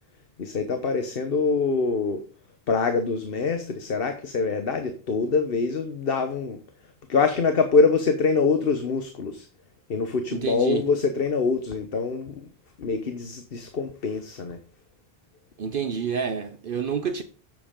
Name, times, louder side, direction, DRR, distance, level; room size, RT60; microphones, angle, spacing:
voice 1, 0.4-2.2 2.7-6.6 7.1-9.4 9.9-12.3 12.8-14.6, left 4 dB, 65° left, 1.3 m, -24 dB
voice 2, 10.3-10.8 15.6-17.2, right 7 dB, 60° right, 0.9 m, -28 dB
10.5 x 8.2 x 3.7 m
omnidirectional pair, 1.0 m